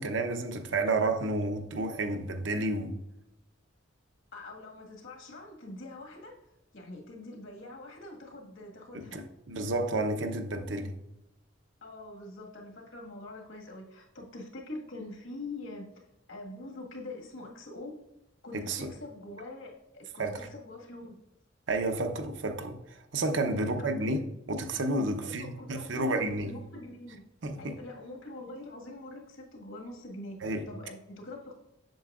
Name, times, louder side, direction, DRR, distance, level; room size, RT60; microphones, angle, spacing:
voice 1, 0.0-2.9 8.9-10.9 18.5-18.9 20.2-20.5 21.7-26.5 27.4-27.8 30.4-30.6, right 2 dB, 65° right, 0.7 m, -31 dB
voice 2, 4.3-6.3 6.7-9.2 11.8-15.9 16.3-18.0 18.4-21.2 23.6-23.9 25.2-27.2 27.6-31.5, left 2 dB, 80° left, 1.7 m, -44 dB
7.8 x 6.7 x 2.4 m
head